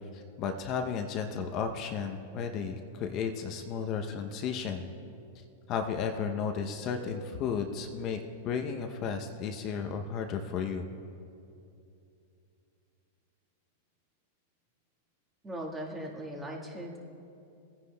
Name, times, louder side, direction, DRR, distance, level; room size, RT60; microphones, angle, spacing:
voice 1, 0.1-4.9 5.7-8.2 8.4-10.9, left 6 dB, 40° left, 4 dB, 0.6 m, -33 dB
voice 2, 15.4-17.0, right 1 dB, 15° right, -2 dB, 1.5 m, -39 dB
16.5 x 9.8 x 2.2 m, 2.7 s
hypercardioid pair, 115°, 0 cm